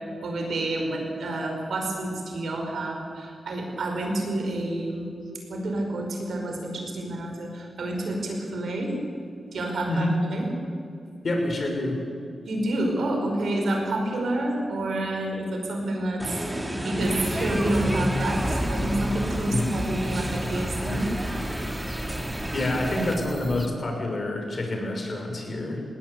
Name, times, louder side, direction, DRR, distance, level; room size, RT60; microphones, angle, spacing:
voice 1, 0.2-5.1 5.5-9.0 9.5-10.5 12.4-21.1, right 1 dB, 80° right, 2 dB, 5.1 m, -29 dB
voice 2, 9.9-10.2 11.2-12.0 19.5-19.7 22.5-25.8, left 1 dB, 50° left, 2 dB, 6.1 m, -27 dB
sound 1, 16.2-23.1, right 1 dB, 15° right, 2.9 m, -31 dB
sound 2, 17.0-23.7, equal, 5° left, 1.4 m, -34 dB
19.5 x 17.5 x 8.5 m, 2.5 s
cardioid pair, 60°, 0 cm